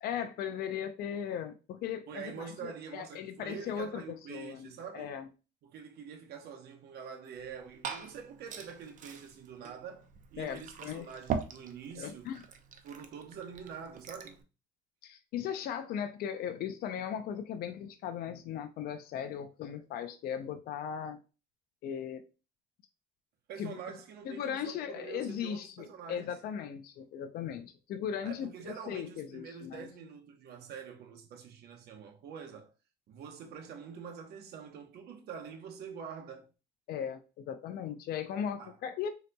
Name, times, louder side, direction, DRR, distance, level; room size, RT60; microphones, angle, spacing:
voice 1, 0.0-4.0 4.3-5.3 10.4-11.1 11.9-12.4 15.0-21.2 21.8-22.2 23.6-23.8 24.2-29.9 36.9-39.1, left 8 dB, 65° left, 0.5 m, -38 dB
voice 2, 2.1-5.1 5.6-12.3 12.8-14.4 23.5-26.4 28.2-32.7 33.1-36.5 38.6-38.8, right 7 dB, 70° right, 0.8 m, -45 dB
Liquid, 7.3-14.4, right 6 dB, 50° right, 0.5 m, -42 dB
3.8 x 2.8 x 2.2 m
cardioid pair, 110°, 17 cm